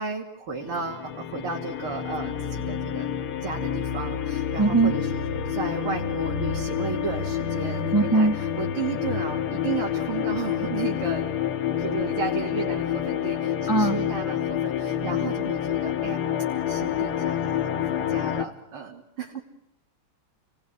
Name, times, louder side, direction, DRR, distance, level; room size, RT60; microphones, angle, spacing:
voice 1, 0.0-3.1 3.4-11.3 11.8-16.2 16.7-19.4, right 5 dB, 80° right, -3 dB, 3.7 m, -34 dB
sound 1, 0.6-18.5, left 9 dB, 80° left, 2.2 m, -28 dB
voice 2, 4.6-4.9 7.9-8.4 13.7-14.0, right 3 dB, 30° right, 9 dB, 0.3 m, -20 dB
29.0 x 19.5 x 9.7 m, 0.87 s
omnidirectional pair, 2.4 m